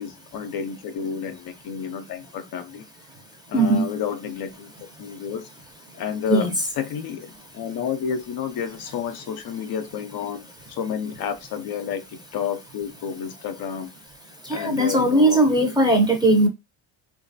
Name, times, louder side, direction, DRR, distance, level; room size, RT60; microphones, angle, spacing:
voice 1, 0.0-2.8 3.5-5.5 5.9-6.5 6.8-13.9 14.5-15.7, left 7 dB, 55° left, 7 dB, 0.6 m, -31 dB
voice 2, 3.5-3.8 6.3-6.5 14.4-16.5, right 1 dB, 10° right, 3 dB, 0.7 m, -18 dB
2.9 x 2.5 x 2.6 m, 0.23 s
cardioid pair, 110°, 46 cm